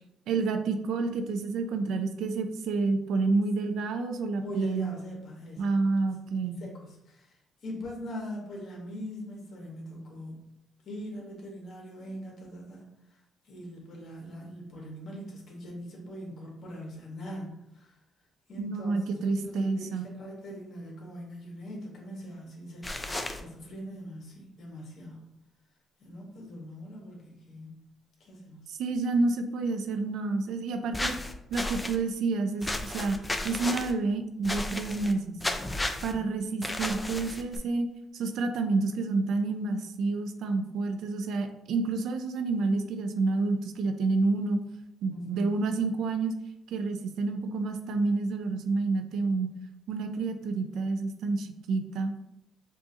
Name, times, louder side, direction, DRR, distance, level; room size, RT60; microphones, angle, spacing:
voice 1, 0.3-5.0 5.6-6.6 18.6-20.1 28.7-31.2 31.5-33.2 33.4-35.4 36.0-37.9 38.1-44.6 45.0-46.3 46.7-49.5 49.9-52.1, right 3 dB, 80° right, 7 dB, 0.4 m, -29 dB
voice 2, 4.4-5.7 6.2-10.5 10.8-13.2 13.4-17.9 18.5-22.9 23.3-25.3 26.0-27.7 28.2-28.7 36.1-36.4 45.1-45.7, equal, 60° left, -1 dB, 1.3 m, -42 dB
sound 1, 22.8-23.4 30.9-32.0 32.6-33.9 34.4-35.1 35.4-36.1 36.6-37.6, left 1 dB, 15° left, 0.4 m, -33 dB
4.8 x 2.5 x 2.8 m, 0.84 s
cardioid pair, 90°, 0 cm